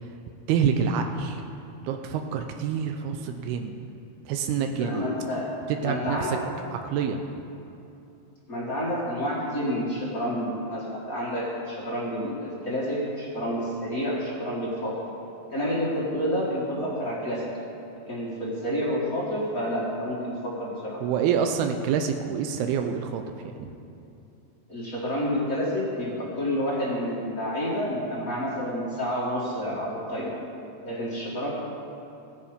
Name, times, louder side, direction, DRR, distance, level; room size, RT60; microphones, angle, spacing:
voice 1, 0.5-1.4 1.8-3.7 4.3-5.1 5.8-6.4 6.7-7.4 21.0-23.7, right 7 dB, 85° right, 5 dB, 2.6 m, -27 dB
voice 2, 4.8-5.5 5.8-6.4 8.5-15.0 15.5-17.5 17.9-21.0 24.7-30.4 30.8-31.5, equal, 35° left, -5 dB, 1.5 m, -29 dB
16.0 x 9.7 x 5.1 m, 2.8 s
omnidirectional pair, 4.4 m